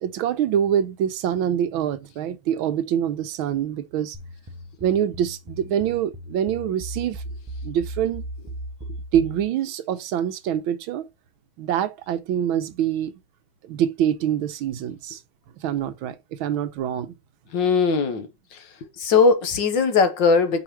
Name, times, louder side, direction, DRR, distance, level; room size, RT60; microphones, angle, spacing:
voice 1, 0.0-4.2 4.8-7.2 7.6-8.2 9.1-11.1 11.6-13.1 13.6-15.2 15.6-17.2, right 9 dB, 75° right, 1.4 m, -25 dB
sound 1, 4.1-9.4, right 1 dB, 35° right, 0.4 m, -37 dB
voice 2, 17.5-18.3 18.5-18.6 19.0-20.6, left 4 dB, 60° left, 1.6 m, -19 dB
5.0 x 4.8 x 4.6 m
omnidirectional pair, 2.3 m